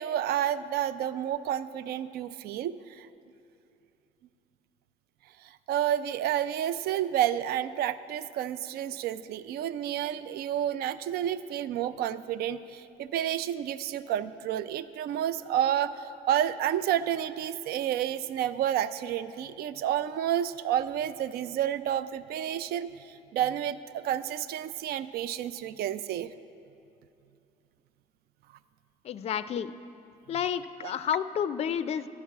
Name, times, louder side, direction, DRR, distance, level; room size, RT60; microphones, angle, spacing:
voice 1, 0.0-3.1 5.4-26.3 30.8-30.9, right 11 dB, 70° right, 14 dB, 0.4 m, -30 dB
voice 2, 29.0-29.7 30.3-32.1, left 8 dB, 40° left, 13 dB, 0.4 m, -30 dB
12.0 x 6.0 x 8.2 m, 2.7 s
cardioid pair, 110°, 17 cm